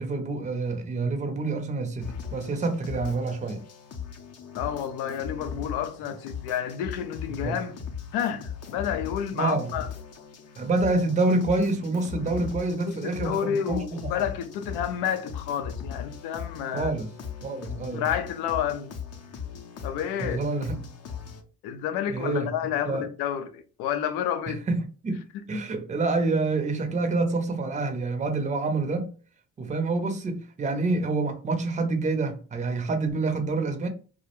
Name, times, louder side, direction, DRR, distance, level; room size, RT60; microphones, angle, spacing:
voice 1, 0.0-3.6 7.3-7.6 9.3-9.7 10.6-14.1 16.7-17.1 17.4-18.0 20.2-20.8 22.1-22.5 22.8-23.0 24.5-25.2 25.5-29.1 29.6-33.9, right 3 dB, 20° right, 0.5 m, -27 dB
sound 1, 2.0-21.4, left 7 dB, 40° left, 0.5 m, -39 dB
voice 2, 4.6-7.8 8.1-9.9 12.9-16.9 17.9-18.9 19.8-20.4 21.6-24.6 25.5-25.6, left 9 dB, 90° left, 0.5 m, -30 dB
2.3 x 2.1 x 2.9 m
cardioid pair, 85°, 38 cm